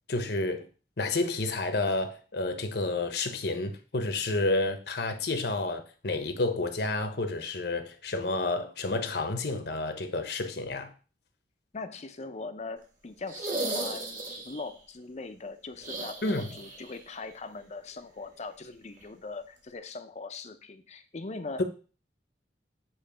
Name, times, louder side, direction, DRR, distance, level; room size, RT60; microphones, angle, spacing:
voice 1, 0.1-0.7 1.0-10.9 16.2-16.5 21.6-21.7, left 2 dB, 65° left, 1.0 m, -30 dB
voice 2, 11.7-21.6, left 3 dB, 40° left, 0.6 m, -41 dB
sound 1, 13.3-14.7 15.8-17.0 17.2-17.3 19.0-19.1, right 2 dB, 50° right, 1.9 m, -35 dB
8.8 x 3.2 x 5.0 m
head